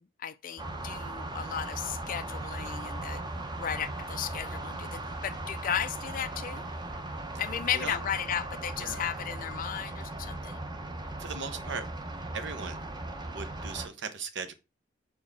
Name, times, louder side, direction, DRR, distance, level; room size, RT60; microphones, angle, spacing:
voice 1, 0.0-3.2 3.6-6.7 7.4-10.6, left 9 dB, 45° left, 0.4 m, -35 dB
sound 1, 0.6-13.9, right 2 dB, 25° right, 0.8 m, -38 dB
voice 2, 11.2-11.8 12.3-12.8 13.2-14.5, right 5 dB, 65° right, 1.0 m, -38 dB
4.7 x 4.1 x 5.8 m
head